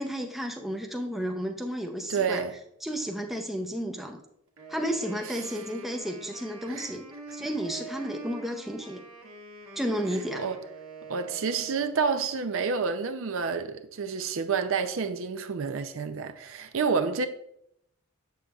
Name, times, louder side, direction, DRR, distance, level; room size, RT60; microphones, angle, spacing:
voice 1, 0.0-2.4 2.8-4.2 4.7-7.0 7.3-9.0 9.8-10.5, equal, ahead, 0.5 m, -32 dB
voice 2, 2.1-2.6 6.7-6.9 10.3-10.6 11.1-17.3, right 5 dB, 60° right, 0.5 m, -29 dB
Wind instrument woodwind instrument, 4.6-12.2, right 3 dB, 85° right, 1.4 m, -45 dB
7.5 x 6.9 x 2.3 m
head